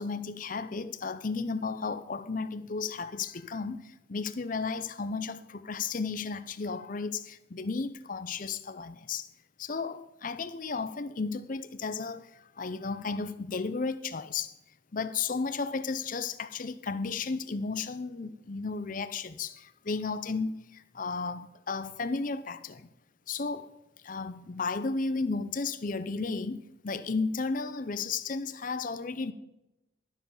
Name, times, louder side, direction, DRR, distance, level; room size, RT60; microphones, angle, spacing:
voice 1, 0.0-9.3 9.6-14.6 14.9-22.9 23.3-23.7 24.0-29.3, left 4 dB, 40° left, 0.6 m, -34 dB
12.5 x 7.1 x 5.5 m
head